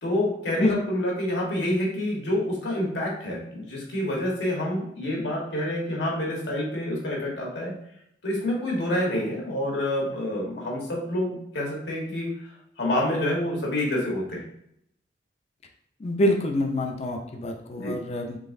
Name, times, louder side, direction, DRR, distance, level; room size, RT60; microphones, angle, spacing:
voice 1, 0.0-7.7 8.2-12.3 12.8-14.4 17.7-17.9, left 1 dB, 75° left, -2 dB, 1.2 m, -27 dB
voice 2, 16.0-18.4, left 1 dB, 35° left, 3 dB, 0.4 m, -26 dB
3.8 x 3.4 x 2.5 m, 0.74 s
head